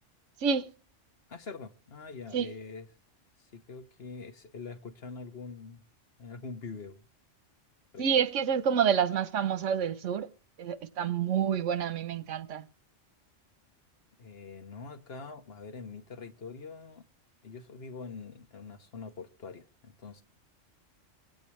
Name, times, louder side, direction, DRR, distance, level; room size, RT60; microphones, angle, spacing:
voice 1, 0.4-0.7 2.3-2.5 8.0-10.3 10.6-12.7, right 7 dB, 80° right, 1.1 m, -28 dB
voice 2, 1.3-2.9 3.5-5.8 6.2-7.0 7.9-8.1 14.2-17.1 17.4-20.2, left 4 dB, 55° left, 1.4 m, -44 dB
25.0 x 8.6 x 3.1 m
omnidirectional pair, 1.3 m